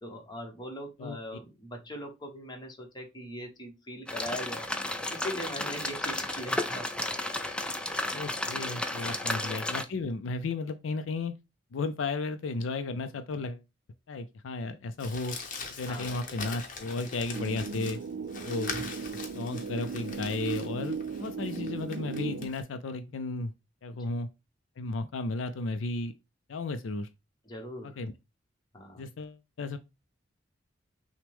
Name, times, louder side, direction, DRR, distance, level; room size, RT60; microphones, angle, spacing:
voice 1, 0.0-4.6 5.1-6.9 9.0-9.3 15.9-16.1 27.4-28.0 28.7-29.1, equal, 25° left, 1.0 m, -40 dB
sound 1, 4.1-9.9, left 1 dB, 5° left, 0.4 m, -33 dB
voice 2, 8.1-11.3 11.7-13.6 14.1-15.3 15.8-18.0 18.4-18.7 19.3-23.5 23.8-24.3 24.8-26.1 26.5-27.1 27.8-28.1 29.0-29.8, left 3 dB, 75° left, 0.4 m, -34 dB
Crumpling crinkling, 15.0-22.6, left 4 dB, 45° left, 0.9 m, -42 dB
sound 2, 17.3-22.5, right 4 dB, 60° right, 0.4 m, -36 dB
5.9 x 2.2 x 3.4 m
head